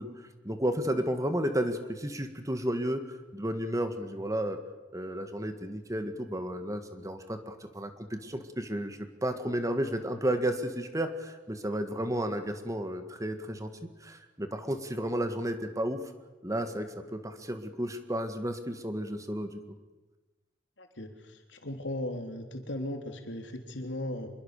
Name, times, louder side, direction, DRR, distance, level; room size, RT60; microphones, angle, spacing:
voice 1, 0.0-3.0 3.3-4.6 4.9-13.7 14.0-16.0 16.4-19.6, right 1 dB, 20° right, 8 dB, 1.9 m, -32 dB
voice 2, 20.8-21.1 21.5-24.3, left 1 dB, 85° left, 5 dB, 3.4 m, -37 dB
26.5 x 22.0 x 6.8 m, 1.2 s
head